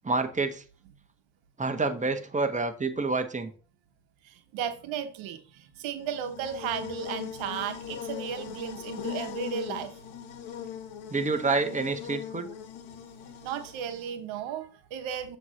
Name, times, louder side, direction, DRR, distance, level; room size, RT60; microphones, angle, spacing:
voice 1, 0.0-0.6 1.6-3.5 11.1-12.5, right 3 dB, 15° right, 1.2 m, -28 dB
voice 2, 4.5-9.9 13.4-15.4, right 8 dB, 85° right, 1.1 m, -35 dB
Buzz, 6.0-14.1, left 9 dB, 85° left, 1.3 m, -40 dB
7.4 x 3.2 x 6.3 m
supercardioid pair, 70°, 45 cm